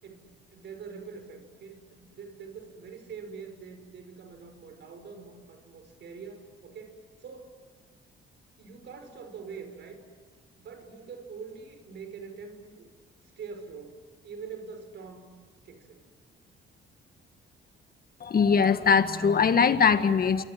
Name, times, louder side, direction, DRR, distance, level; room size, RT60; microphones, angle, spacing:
voice 1, 0.0-7.6 8.6-10.0 10.6-12.9 13.2-14.0 14.2-15.3 15.6-16.0, right 5 dB, 65° right, 7 dB, 5.8 m, -44 dB
voice 2, 18.2-20.4, left 6 dB, 50° left, 9 dB, 1.9 m, -21 dB
27.5 x 25.0 x 7.8 m, 1.5 s
cardioid pair, 90°, 20 cm